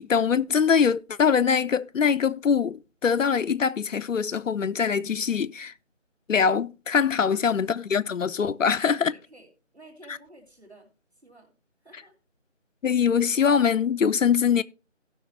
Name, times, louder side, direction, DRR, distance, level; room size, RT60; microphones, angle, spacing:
voice 1, 0.0-5.7 6.3-9.1 12.8-14.6, left 6 dB, 85° left, 0.5 m, -23 dB
voice 2, 7.0-7.5 9.0-10.9 11.2-11.5 11.8-12.1, right 2 dB, 55° right, 3.4 m, -51 dB
16.5 x 6.0 x 3.3 m
figure-of-eight pair, 180°, 38 cm